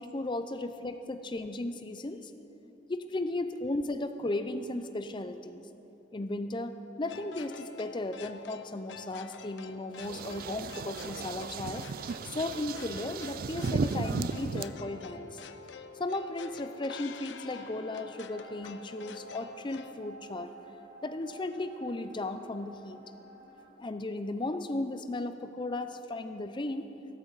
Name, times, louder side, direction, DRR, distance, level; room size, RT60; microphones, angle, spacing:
voice 1, 0.0-2.3 2.9-5.7 6.1-15.4 16.0-20.5 21.0-23.0 23.8-26.9, left 2 dB, 25° left, 9 dB, 0.5 m, -35 dB
sound 1, 7.1-19.9, left 5 dB, 80° left, 0.6 m, -48 dB
sound 2, 10.0-14.6, right 5 dB, 55° right, 0.3 m, -35 dB
sound 3, 17.8-23.7, right 3 dB, 80° right, 2.0 m, -52 dB
16.0 x 13.5 x 4.0 m, 3.0 s
head